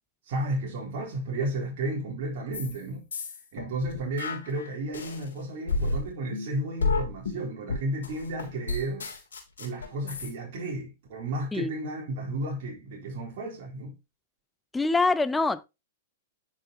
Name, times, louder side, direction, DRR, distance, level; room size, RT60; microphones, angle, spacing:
voice 1, 0.2-3.0 3.5-9.1 9.6-14.0, right 1 dB, 55° right, 3.8 m, -33 dB
sound 1, 2.5-2.8 3.1-5.3 5.7-10.3, left 3 dB, 75° left, 3.0 m, -31 dB
voice 2, 14.7-15.7, left 3 dB, 10° left, 0.7 m, -24 dB
9.4 x 6.4 x 2.8 m
hypercardioid pair, 105°, 0 cm